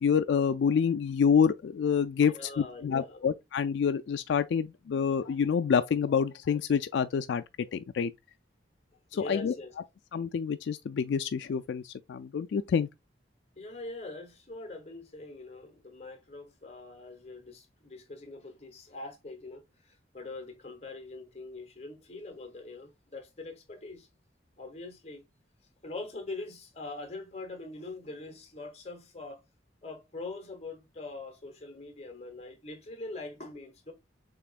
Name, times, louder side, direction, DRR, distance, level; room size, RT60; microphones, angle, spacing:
voice 1, 0.0-8.1 9.1-9.5 10.1-12.9, left 6 dB, 75° left, 0.3 m, -27 dB
voice 2, 2.3-3.2 9.1-9.7 13.6-24.1 24.6-25.2 25.8-29.4 29.8-33.9, left 2 dB, 35° left, 1.2 m, -43 dB
6.9 x 3.0 x 2.4 m
head